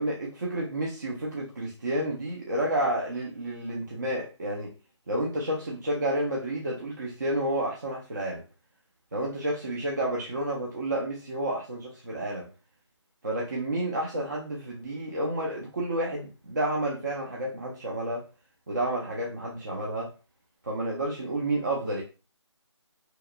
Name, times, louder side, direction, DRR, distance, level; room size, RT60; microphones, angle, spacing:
voice 1, 0.0-4.7 5.1-8.4 9.1-12.5 13.2-18.2 18.7-20.1 20.6-22.0, right 1 dB, 40° right, -3 dB, 0.5 m, -30 dB
2.8 x 2.3 x 2.2 m, 0.32 s
figure-of-eight pair, 165°, 15 cm